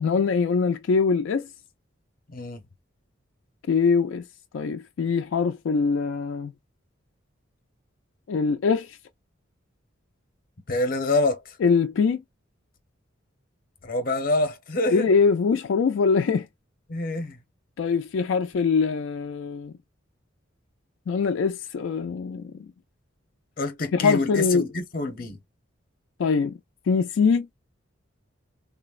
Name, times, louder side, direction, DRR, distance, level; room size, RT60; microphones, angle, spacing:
voice 1, 0.0-1.5 3.7-4.3 4.5-6.5 8.3-9.0 11.6-12.2 14.9-16.5 17.8-19.7 21.1-22.7 23.9-24.7 26.2-26.6 26.9-27.5, left 5 dB, 75° left, 0.3 m, -23 dB
voice 2, 2.3-2.6 10.7-11.4 13.8-15.1 16.9-17.4 23.6-25.4, left 2 dB, 45° left, 0.7 m, -26 dB
3.8 x 2.0 x 2.3 m
head